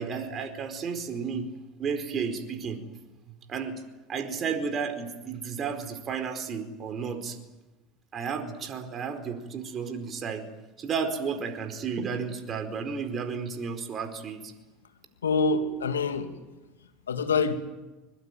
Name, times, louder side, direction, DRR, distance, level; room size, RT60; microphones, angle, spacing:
voice 1, 0.0-1.5 1.8-2.8 3.5-3.8 4.1-7.4 8.1-10.4 10.8-14.5, right 6 dB, 35° right, 7 dB, 4.6 m, -32 dB
voice 2, 15.2-16.3 17.1-17.5, left 4 dB, 85° left, 6 dB, 2.6 m, -25 dB
24.5 x 22.5 x 9.2 m, 1.1 s
hypercardioid pair, 80°, 0 cm